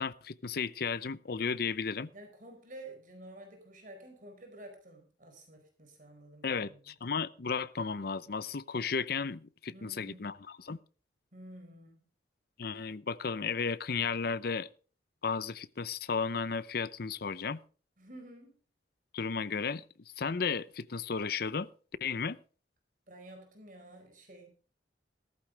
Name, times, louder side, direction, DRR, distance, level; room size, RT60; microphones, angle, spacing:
voice 1, 0.0-2.1 6.4-10.8 12.6-14.7 15.2-17.6 19.1-19.8 20.2-21.7 22.0-22.4, left 5 dB, 60° left, 0.7 m, -34 dB
voice 2, 2.1-7.0 9.7-10.4 11.3-12.1 18.0-18.6 23.1-24.5, right 1 dB, 50° right, 4.6 m, -51 dB
15.5 x 13.5 x 3.3 m
head